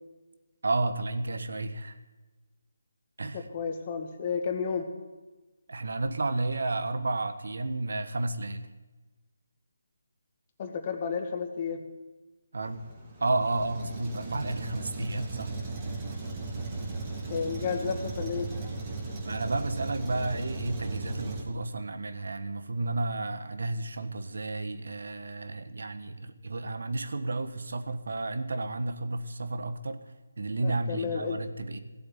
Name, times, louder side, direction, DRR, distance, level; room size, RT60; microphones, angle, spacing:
voice 1, 0.6-2.0 3.2-3.5 5.7-8.7 12.5-12.9 13.2-15.5 19.2-30.0 30.4-31.8, right 2 dB, 70° right, 9 dB, 1.5 m, -32 dB
voice 2, 3.3-4.9 10.6-11.8 17.3-18.5 30.6-31.4, left 6 dB, 30° left, 4 dB, 1.9 m, -32 dB
Truck, 12.6-21.4, right 3 dB, 25° right, 3.6 m, -37 dB
17.5 x 7.9 x 9.7 m, 1.2 s
figure-of-eight pair, 160°, 0 cm